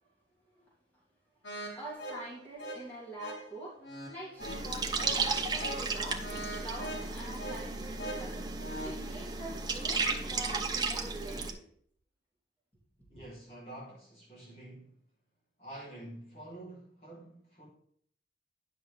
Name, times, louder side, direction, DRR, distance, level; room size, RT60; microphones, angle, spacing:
sound 1, 1.4-9.1, right 1 dB, 75° left, 2.1 m, -43 dB
voice 1, 1.7-6.3 6.6-11.7, right 1 dB, 10° left, 3.2 m, -45 dB
sound 2, 4.4-11.5, right 4 dB, 20° right, 0.7 m, -34 dB
voice 2, 13.1-15.0 15.6-17.7, right 1 dB, 35° left, 3.3 m, -48 dB
10.0 x 6.3 x 3.4 m
head